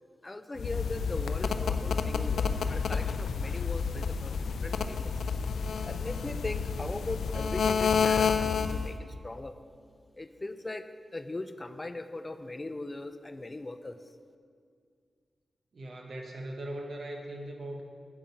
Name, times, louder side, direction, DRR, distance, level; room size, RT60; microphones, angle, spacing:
voice 1, 0.2-4.3 4.6-5.1 5.8-9.5 10.1-14.0, left 2 dB, 35° left, 9 dB, 0.5 m, -39 dB
sound 1, 0.6-9.0, left 6 dB, 90° left, 0.4 m, -29 dB
voice 2, 15.7-17.8, right 1 dB, 70° right, 2 dB, 1.2 m, -39 dB
8.8 x 5.4 x 7.1 m, 2.1 s
cardioid pair, 45°, 0 cm